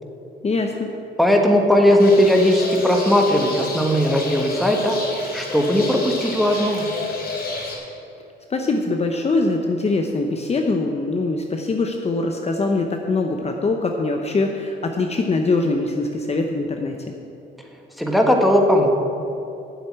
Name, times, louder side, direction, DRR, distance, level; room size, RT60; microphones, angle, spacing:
voice 1, 0.4-0.9 8.5-17.1, left 3 dB, 30° left, 3 dB, 0.9 m, -23 dB
voice 2, 1.2-4.9 5.3-6.8 18.0-18.9, equal, ahead, 1 dB, 1.6 m, -17 dB
sound 1, 2.0-7.8, left 3 dB, 50° left, 3.2 m, -30 dB
8.1 x 7.8 x 8.7 m, 2.8 s
cardioid pair, 90°, 20 cm